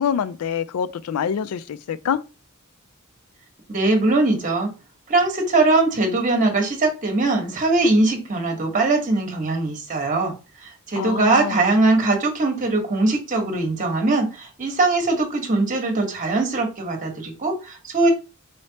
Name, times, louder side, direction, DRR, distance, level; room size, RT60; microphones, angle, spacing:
voice 1, 0.0-2.2 11.0-11.6, left 7 dB, 75° left, 0.3 m, -25 dB
voice 2, 3.7-4.7 5.1-10.3 10.6-18.1, right 2 dB, 35° right, 1.1 m, -21 dB
4.2 x 3.2 x 2.8 m
head